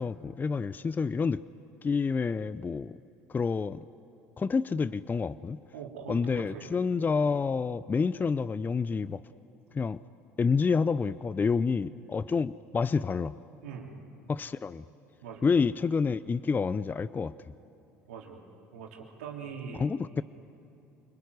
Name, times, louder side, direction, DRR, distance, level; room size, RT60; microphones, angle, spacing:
voice 1, 0.0-1.4 1.8-3.0 3.3-3.8 4.4-5.6 6.1-9.2 9.7-10.0 10.4-13.3 14.3-14.8 15.4-17.3 19.8-20.2, left 5 dB, 25° left, 16 dB, 0.5 m, -28 dB
voice 2, 5.7-6.7 13.6-13.9 15.2-15.5 18.1-18.4 18.7-19.9, right 6 dB, 90° right, 0 dB, 3.3 m, -42 dB
26.5 x 20.5 x 9.6 m, 2.7 s
hypercardioid pair, 70°, 7 cm